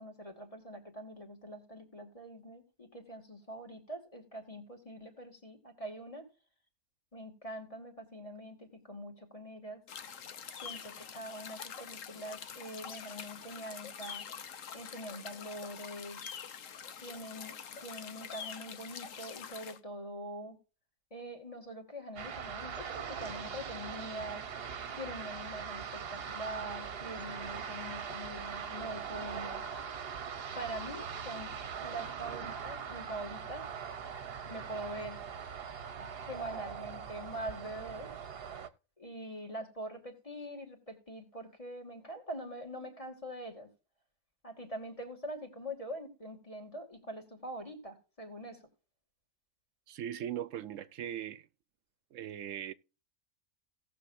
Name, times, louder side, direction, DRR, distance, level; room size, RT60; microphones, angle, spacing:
voice 1, 0.0-6.3 7.1-9.8 10.6-14.3 14.7-16.2 17.0-20.6 21.1-24.4 24.9-30.1 30.5-31.5 31.8-33.6 33.9-34.0 34.5-35.2 36.0-38.1 39.0-43.7 44.4-48.6, right 1 dB, 25° left, 2.6 m, -44 dB
sound 1, 9.9-19.8, left 7 dB, 80° left, 1.3 m, -45 dB
sound 2, 22.2-38.7, right 7 dB, 50° right, 1.0 m, -41 dB
voice 2, 49.9-51.5 52.1-52.7, right 10 dB, 75° right, 1.0 m, -39 dB
18.0 x 6.8 x 2.6 m
omnidirectional pair, 1.3 m